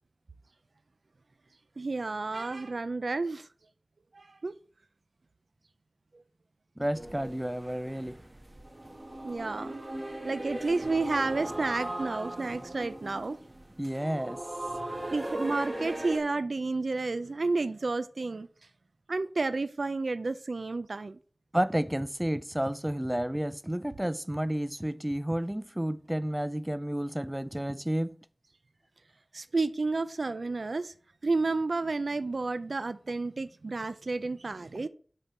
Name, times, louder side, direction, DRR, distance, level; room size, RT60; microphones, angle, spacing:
voice 1, 1.8-3.5 4.1-4.5 9.2-9.8 10.2-13.4 15.1-18.5 19.1-21.2 29.3-30.9 31.2-34.9, right 3 dB, 90° right, 0.4 m, -31 dB
voice 2, 6.8-8.2 13.8-14.4 21.5-28.2, right 1 dB, 15° right, 0.4 m, -31 dB
sound 1, 6.9-16.2, right 1 dB, 35° right, 2.0 m, -38 dB
6.8 x 4.4 x 5.3 m
wide cardioid pair, 60°, 0 cm